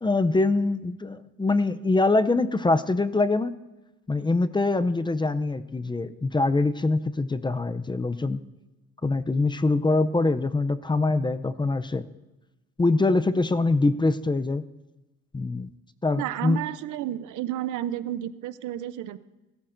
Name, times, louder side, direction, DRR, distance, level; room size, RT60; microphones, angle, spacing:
voice 1, 0.0-3.5 4.1-8.4 9.0-12.1 12.8-14.6 15.3-15.7 16.0-16.6, left 3 dB, 15° left, 12 dB, 0.5 m, -24 dB
voice 2, 16.2-19.2, right 12 dB, 80° right, 15 dB, 0.6 m, -31 dB
20.5 x 13.0 x 2.6 m, 1.1 s
cardioid pair, 90°, 30 cm